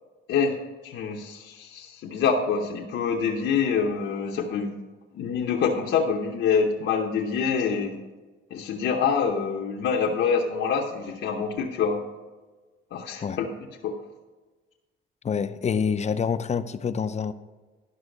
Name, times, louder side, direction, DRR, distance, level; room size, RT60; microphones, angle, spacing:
voice 1, 0.8-4.8 5.1-8.0 8.5-12.0 12.9-13.5 13.8-13.9, left 6 dB, 75° left, -1 dB, 0.9 m, -26 dB
voice 2, 15.2-17.3, left 6 dB, 35° left, 11 dB, 0.5 m, -26 dB
11.5 x 5.5 x 5.2 m, 1.3 s
cardioid pair, 90°, 20 cm